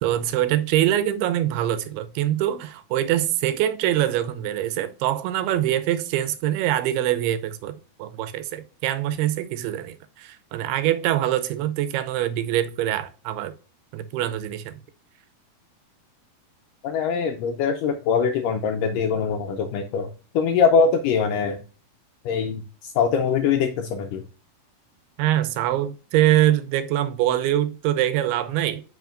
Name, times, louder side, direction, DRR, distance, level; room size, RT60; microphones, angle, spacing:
voice 1, 0.0-13.5 13.9-14.7 25.2-28.8, right 12 dB, 85° right, 2.7 m, -24 dB
voice 2, 16.8-20.1 20.4-21.6 22.3-24.2, left 6 dB, 85° left, 1.9 m, -22 dB
9.3 x 5.5 x 2.5 m
omnidirectional pair, 4.4 m